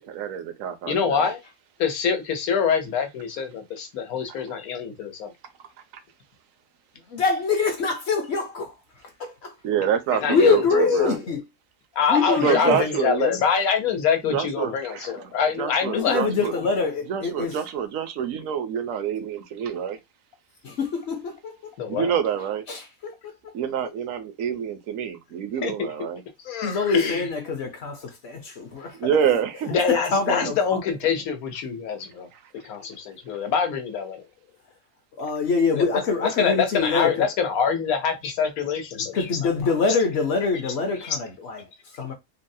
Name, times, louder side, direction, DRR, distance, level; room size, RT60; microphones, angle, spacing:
voice 1, 0.0-1.3 9.6-11.2 12.4-13.4 14.3-15.2 15.6-16.5 17.1-20.0 21.9-22.6 23.5-26.2 29.0-29.7 30.3-30.5, right 8 dB, 70° right, 0.9 m, -27 dB
voice 2, 0.9-1.4 1.8-5.3 10.1-11.2 11.9-16.4 21.8-22.1 25.6-25.7 26.4-27.2 29.7-32.3 32.5-34.3 35.7-35.9 36.4-39.3 41.0-41.2, left 6 dB, 80° left, 1.2 m, -25 dB
voice 3, 7.1-9.6 10.3-11.4 12.1-12.9 15.9-17.6 20.6-21.7 22.7-23.5 23.8-23.9 26.6-29.4 29.9-30.8 35.2-37.3 39.1-42.1, left 4 dB, 60° left, 0.8 m, -25 dB
3.8 x 2.0 x 2.6 m
omnidirectional pair, 1.5 m